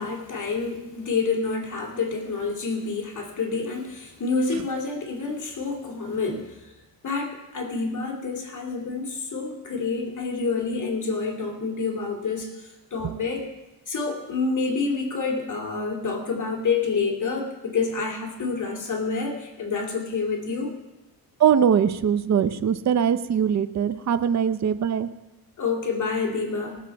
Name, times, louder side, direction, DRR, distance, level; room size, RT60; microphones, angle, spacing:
voice 1, 0.0-6.7 7.0-13.5 13.9-20.7 25.6-26.8, left 4 dB, 50° left, 0 dB, 2.4 m, -28 dB
voice 2, 21.4-25.1, right 8 dB, 45° right, 11 dB, 0.7 m, -21 dB
19.0 x 7.3 x 4.7 m, 1.0 s
cardioid pair, 100°, 38 cm